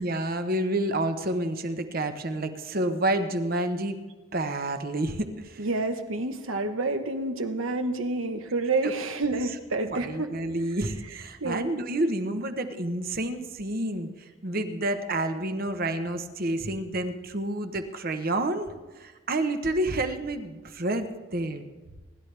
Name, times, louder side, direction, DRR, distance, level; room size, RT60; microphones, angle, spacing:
voice 1, 0.0-4.0 4.3-5.7 8.8-8.9 9.9-21.1 21.3-21.7, right 1 dB, 45° right, 8 dB, 1.0 m, -29 dB
voice 2, 5.6-10.3 11.4-11.7, right 2 dB, 80° right, 7 dB, 1.2 m, -28 dB
26.5 x 12.0 x 3.4 m, 1.3 s
head